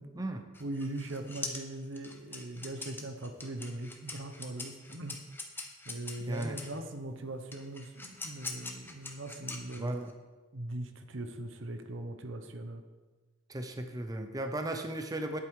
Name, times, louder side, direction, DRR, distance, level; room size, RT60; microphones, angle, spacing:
sound 1, 0.5-6.8 7.5-10.1, left 3 dB, 10° left, 1.1 m, -43 dB
voice 1, 0.6-5.2 5.8-10.0 10.5-12.8, right 1 dB, 75° right, 7 dB, 1.1 m, -40 dB
voice 2, 6.3-6.6 9.8-10.1 13.5-15.4, right 1 dB, 20° right, 5 dB, 0.7 m, -36 dB
11.0 x 8.5 x 4.8 m, 1.3 s
head